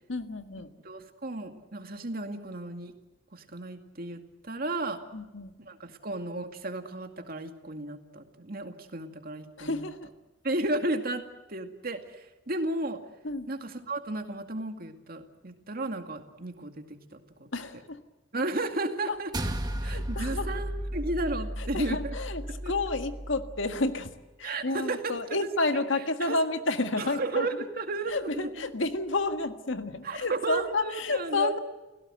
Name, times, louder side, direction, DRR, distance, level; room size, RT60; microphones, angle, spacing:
voice 1, 0.1-0.7 5.1-5.5 9.6-10.1 13.2-13.5 17.5-18.0 19.1-19.2 19.8-20.5 21.7-24.1 24.4-27.5 28.1-31.6, left 2 dB, 80° left, 8 dB, 1.7 m, -30 dB
voice 2, 0.8-2.9 3.3-5.0 5.6-9.9 10.4-13.0 13.5-17.5 18.3-19.3 19.8-22.2 22.5-22.7 24.4-25.5 25.7-26.4 27.0-28.7 30.0-31.5, right 2 dB, 50° right, 6 dB, 2.3 m, -34 dB
sound 1, 19.3-23.9, right 1 dB, 20° right, 1.8 m, -34 dB
29.5 x 17.0 x 7.9 m, 1.1 s
head